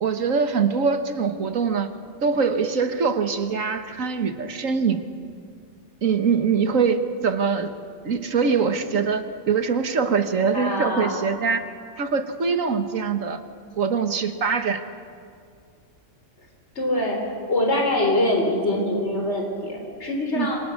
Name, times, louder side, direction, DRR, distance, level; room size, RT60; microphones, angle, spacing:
voice 1, 0.0-1.9 2.2-5.0 6.0-7.7 8.0-11.7 12.0-13.4 13.8-14.8 20.4-20.5, right 5 dB, 90° right, 8 dB, 1.8 m, -23 dB
voice 2, 10.5-11.1 16.8-17.2 17.5-20.6, left 1 dB, 60° left, 1 dB, 4.1 m, -24 dB
27.5 x 25.0 x 6.4 m, 2.2 s
omnidirectional pair, 1.3 m